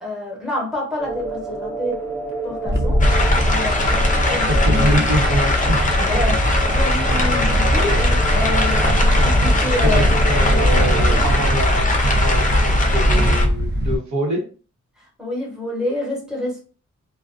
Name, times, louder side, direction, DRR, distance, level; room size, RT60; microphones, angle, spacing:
voice 1, 0.0-2.0 2.4-3.0 3.4-5.3 6.1-6.4 6.7-10.1 10.4-10.8 11.1-11.3 15.0-16.6, left 2 dB, ahead, -3 dB, 1.0 m, -28 dB
sound 1, 1.0-11.3, right 2 dB, 55° right, 0.8 m, -30 dB
Wind, 2.7-14.0, equal, 35° right, 0.5 m, -19 dB
sound 2, 3.0-13.5, left 2 dB, 25° left, 0.5 m, -22 dB
voice 2, 4.5-6.1 7.3-7.5 9.8-10.0 10.3-14.4, equal, 80° right, -1 dB, 0.9 m, -25 dB
2.4 x 2.2 x 2.4 m, 0.38 s
wide cardioid pair, 120°, 29 cm